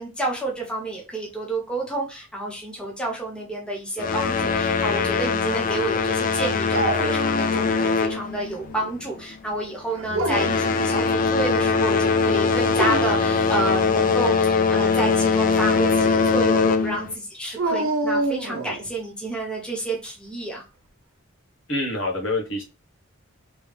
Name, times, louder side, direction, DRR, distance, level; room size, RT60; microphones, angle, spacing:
voice 1, 0.0-20.6, right 2 dB, 5° left, -2 dB, 0.8 m, -29 dB
sound 1, 4.0-8.9 9.2-9.5 10.1-17.1, left 5 dB, 40° left, 0.3 m, -22 dB
Dog, 6.7-7.9 8.2-8.9 9.9-10.7 12.6-13.3 17.6-18.9, right 2 dB, 80° right, 0.7 m, -27 dB
voice 2, 21.7-22.6, left 2 dB, 65° left, 0 dB, 1.2 m, -26 dB
3.4 x 3.1 x 3.3 m, 0.31 s
head